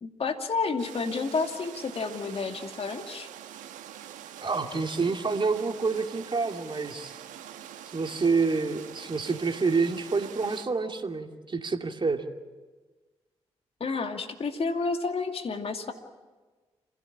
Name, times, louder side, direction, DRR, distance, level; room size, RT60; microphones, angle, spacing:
voice 1, 0.0-3.3 13.8-15.9, left 4 dB, 50° left, 5 dB, 2.5 m, -30 dB
sound 1, 0.8-10.7, right 10 dB, 80° right, 1.3 m, -45 dB
voice 2, 4.4-7.2 7.9-12.3, right 4 dB, 40° right, 5 dB, 2.5 m, -28 dB
27.5 x 16.5 x 8.8 m, 1.3 s
hypercardioid pair, 40°, 13 cm